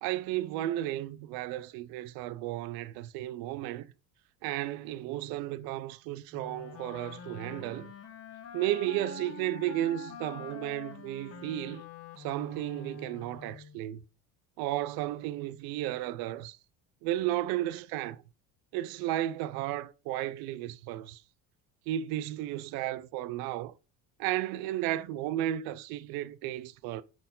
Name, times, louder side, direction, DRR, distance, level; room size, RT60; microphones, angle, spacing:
voice 1, 0.0-3.9 4.4-7.9 8.5-11.8 12.2-14.0 14.6-16.6 17.0-18.2 18.7-21.2 21.9-23.7 24.2-27.0, right 14 dB, 80° right, 0.7 m, -33 dB
Wind instrument woodwind instrument, 6.3-13.8, left 7 dB, 40° left, 1.3 m, -46 dB
9.5 x 4.5 x 3.7 m
cardioid pair, 120°, 36 cm